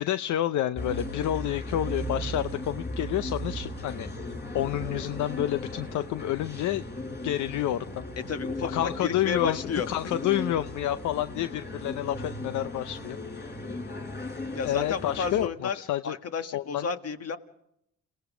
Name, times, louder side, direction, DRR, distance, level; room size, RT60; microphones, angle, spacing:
voice 1, 0.0-4.1 4.5-6.9 7.2-8.0 8.6-9.6 9.9-13.2 14.6-16.2 16.5-16.9, left 12 dB, 75° left, 12 dB, 0.7 m, -29 dB
sound 1, 0.8-15.5, left 1 dB, 35° left, 5.3 m, -37 dB
voice 2, 8.3-8.7 9.0-9.9 14.5-15.8 16.0-17.4, left 6 dB, 55° left, 8 dB, 1.8 m, -31 dB
30.0 x 18.0 x 5.0 m, 0.76 s
cardioid pair, 90°, 30 cm